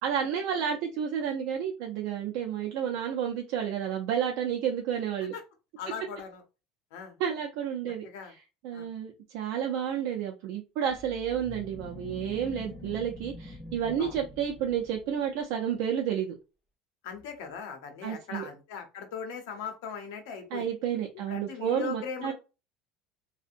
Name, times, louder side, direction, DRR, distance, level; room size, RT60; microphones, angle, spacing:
voice 1, 0.0-5.3 7.2-16.3 18.0-18.4 20.5-22.3, right 8 dB, 65° right, 0 dB, 0.4 m, -31 dB
voice 2, 5.8-6.4 6.9-7.2 7.8-8.3 8.7-8.9 14.0-14.1 17.0-20.7 21.3-22.3, left 6 dB, 80° left, 5 dB, 0.7 m, -39 dB
sound 1, 10.9-15.3, left 1 dB, 20° left, 0.7 m, -45 dB
2.6 x 2.1 x 2.5 m, 0.30 s
cardioid pair, 155°, 0 cm